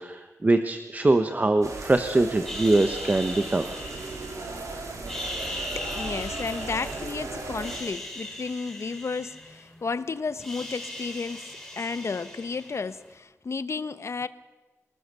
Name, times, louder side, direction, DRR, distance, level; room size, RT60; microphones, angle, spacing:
voice 1, 0.0-3.7, right 2 dB, 30° right, 1.2 m, -23 dB
sound 1, 1.6-7.8, right 3 dB, 85° right, 4.1 m, -37 dB
sound 2, 2.4-4.6 5.0-7.2 7.5-9.9 10.2-13.1, left 1 dB, 5° left, 5.4 m, -39 dB
voice 2, 5.8-14.3, left 4 dB, 60° left, 1.0 m, -33 dB
25.5 x 19.5 x 6.9 m
wide cardioid pair, 115°, 5 cm